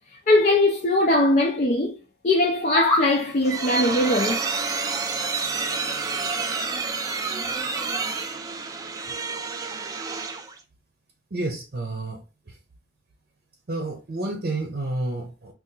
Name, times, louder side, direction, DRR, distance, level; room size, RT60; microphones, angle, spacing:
voice 1, 0.3-2.0 2.2-4.4, left 1 dB, 45° left, 0.5 m, -20 dB
sound 1, 2.4-3.1, left 3 dB, 10° left, 0.8 m, -25 dB
sound 2, 3.0-10.6, right 4 dB, 20° right, 0.3 m, -29 dB
voice 2, 11.3-12.6 13.7-15.5, right 2 dB, 55° right, 0.7 m, -30 dB
2.8 x 2.4 x 3.6 m
head